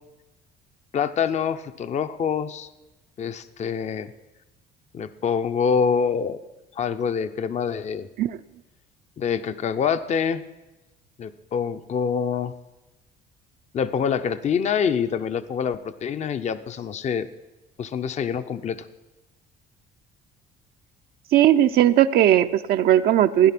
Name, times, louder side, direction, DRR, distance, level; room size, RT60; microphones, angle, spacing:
voice 1, 0.9-2.7 3.2-4.1 4.9-6.4 6.8-8.1 9.2-10.4 11.2-12.5 13.7-17.3 17.8-18.8, left 7 dB, 45° left, 11 dB, 0.7 m, -25 dB
voice 2, 21.3-23.5, right 12 dB, 65° right, 8 dB, 0.6 m, -18 dB
16.5 x 10.5 x 6.0 m, 1.0 s
cardioid pair, 110°, 17 cm